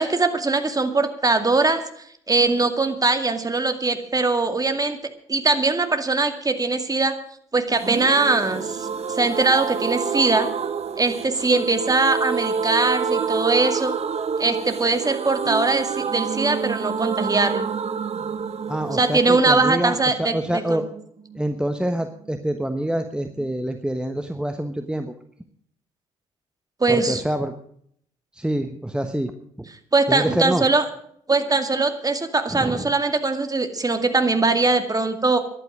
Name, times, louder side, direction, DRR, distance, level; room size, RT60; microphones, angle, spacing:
voice 1, 0.0-1.8 2.3-5.0 5.3-7.2 7.5-10.5 11.0-13.9 14.4-17.7 18.9-20.8 26.8-27.2 29.9-30.9 31.3-35.4, right 3 dB, 20° right, 7 dB, 2.2 m, -21 dB
sound 1, 7.8-21.4 21.7-21.8 22.0-22.1, right 6 dB, 40° right, 1.1 m, -28 dB
voice 2, 18.7-20.8 21.3-25.1 26.9-27.5 28.3-29.3 29.6-29.7 30.1-30.6 32.5-32.9, right 1 dB, 5° right, 7 dB, 1.2 m, -26 dB
14.0 x 11.5 x 6.3 m, 0.66 s
hypercardioid pair, 50°, 16 cm